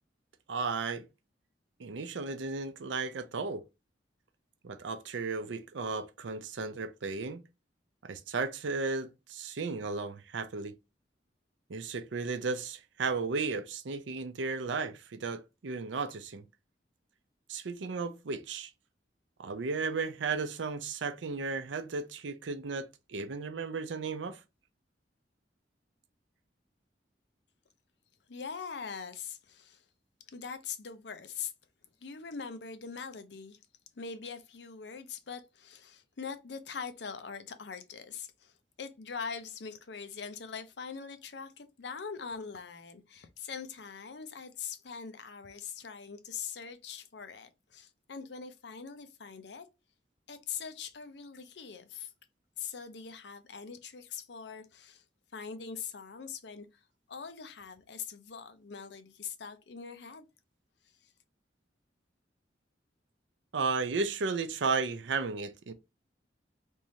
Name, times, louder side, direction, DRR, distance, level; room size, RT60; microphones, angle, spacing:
voice 1, 0.5-1.1 1.8-3.6 4.6-7.4 8.0-10.7 11.7-16.4 17.5-18.7 19.4-24.4 63.5-65.7, right 4 dB, 85° right, 0.5 m, -34 dB
voice 2, 28.3-29.8 30.3-31.5 32.0-33.6 34.0-49.7 50.3-52.1 52.6-55.0 55.3-60.2 61.0-61.1, left 6 dB, 70° left, 0.6 m, -42 dB
3.5 x 3.1 x 2.8 m
head